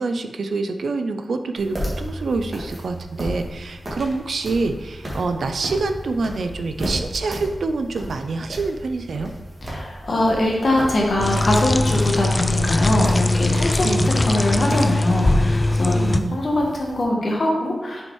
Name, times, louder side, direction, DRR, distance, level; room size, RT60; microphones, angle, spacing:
voice 1, 0.0-9.3 13.8-14.1 15.9-16.4, right 3 dB, 70° right, 7 dB, 0.5 m, -26 dB
sound 1, 1.6-17.0, equal, 25° right, 1.6 m, -34 dB
voice 2, 9.7-16.0 16.3-18.1, left 1 dB, 45° left, -1 dB, 1.4 m, -22 dB
sound 2, 11.2-16.2, left 2 dB, 25° left, 0.3 m, -20 dB
6.3 x 4.4 x 4.6 m, 1.1 s
wide cardioid pair, 150°, 0 cm